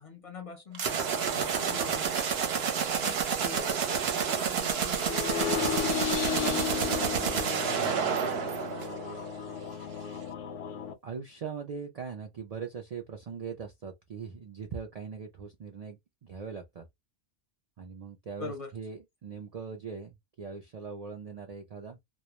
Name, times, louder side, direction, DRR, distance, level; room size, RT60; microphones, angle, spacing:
voice 1, 0.0-2.4 3.0-3.2 3.4-7.9 18.4-18.7, left 4 dB, 40° left, 0.5 m, -43 dB
sound 1, 0.7-9.4, right 7 dB, 65° right, 0.8 m, -29 dB
sound 2, 4.9-10.9, left 7 dB, 80° left, 0.9 m, -34 dB
voice 2, 11.0-16.9 17.8-22.0, right 6 dB, 85° right, 0.3 m, -41 dB
2.2 x 2.1 x 2.8 m
omnidirectional pair, 1.2 m